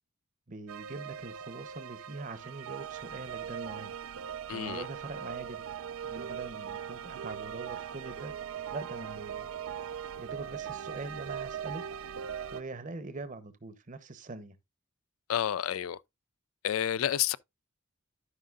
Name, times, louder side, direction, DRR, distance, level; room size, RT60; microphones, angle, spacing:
voice 1, 0.5-3.9 4.5-5.6 6.0-8.3 8.7-9.5 10.2-11.8 12.5-14.6, right 3 dB, 40° right, 0.9 m, -43 dB
sound 1, 0.7-12.6, right 8 dB, 75° right, 0.5 m, -40 dB
voice 2, 4.5-4.8 15.3-16.0 16.6-17.4, left 10 dB, 80° left, 0.4 m, -30 dB
13.0 x 5.2 x 2.4 m
head